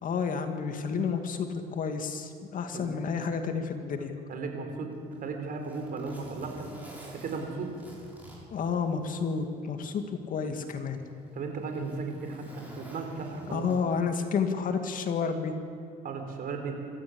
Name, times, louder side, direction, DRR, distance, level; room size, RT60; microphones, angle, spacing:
voice 1, 0.0-4.1 8.5-11.0 13.5-15.5, left 5 dB, 55° left, 6 dB, 2.2 m, -30 dB
voice 2, 4.3-4.9 5.2-6.7 7.2-7.7 11.3-13.7 16.0-16.8, right 4 dB, 55° right, 4 dB, 4.4 m, -35 dB
Zipper (clothing), 4.9-9.4 9.8-9.9 10.7-14.1 15.3-15.5, right 1 dB, 10° right, 6.9 m, -50 dB
26.0 x 14.0 x 8.7 m, 2.3 s
cardioid pair, 110°, 17 cm